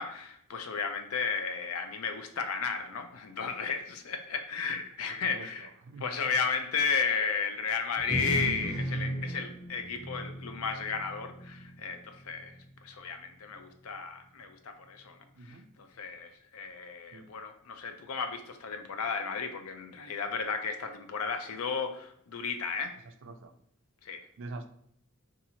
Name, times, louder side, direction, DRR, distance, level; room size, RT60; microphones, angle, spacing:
voice 1, 0.0-5.7 6.0-12.6 12.8-15.2 15.4-23.0 24.0-24.2, left 5 dB, 80° left, 7 dB, 0.5 m, -34 dB
voice 2, 5.1-6.4 15.4-15.7 17.1-17.3 23.2-23.5 24.4-24.7, right 2 dB, 60° right, 7 dB, 0.4 m, -45 dB
sound 1, 7.9-12.7, right 1 dB, 45° left, 1.1 m, -37 dB
4.1 x 2.5 x 2.8 m, 0.68 s
head